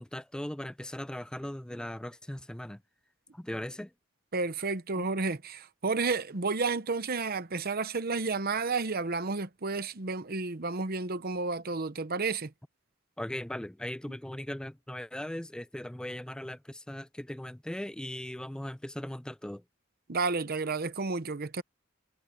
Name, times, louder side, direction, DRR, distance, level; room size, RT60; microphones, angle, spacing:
voice 1, 0.0-2.8 3.3-3.9 5.0-5.1 13.2-19.6, left 1 dB, 5° left, 0.3 m, -39 dB
voice 2, 4.3-12.5 20.1-21.6, right 4 dB, 50° right, 1.0 m, -31 dB
head